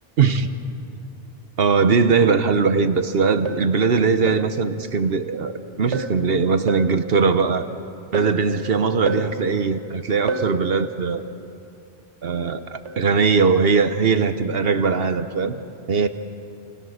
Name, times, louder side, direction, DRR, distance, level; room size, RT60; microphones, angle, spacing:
voice 1, 0.2-0.5 1.6-7.6 8.1-11.3 12.2-15.6 15.9-16.1, right 5 dB, 60° right, 10 dB, 1.1 m, -20 dB
sound 1, 3.5-3.8 4.3-4.6 5.9-6.2 6.7-7.0 8.1-8.5 9.1-9.4 10.3-10.6 12.9-13.1 13.6-13.9, right 3 dB, 85° right, 1.5 m, -29 dB
27.5 x 19.0 x 6.4 m, 2.5 s
omnidirectional pair, 1.2 m